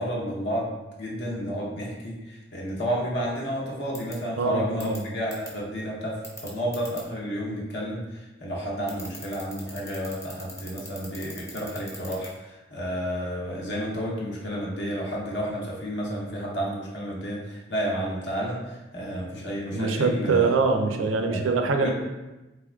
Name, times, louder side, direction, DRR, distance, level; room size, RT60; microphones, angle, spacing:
voice 1, 0.0-20.5 20.9-21.4 21.8-21.9, equal, 65° left, -3 dB, 0.8 m, -31 dB
sound 1, 4.0-4.1 4.8-5.0 5.3-5.5 6.2-7.0 8.9-12.3, left 1 dB, 15° left, 0.7 m, -40 dB
voice 2, 4.4-5.0 19.7-21.9, right 4 dB, 85° right, 5 dB, 0.4 m, -24 dB
3.4 x 3.4 x 2.3 m, 1.1 s
head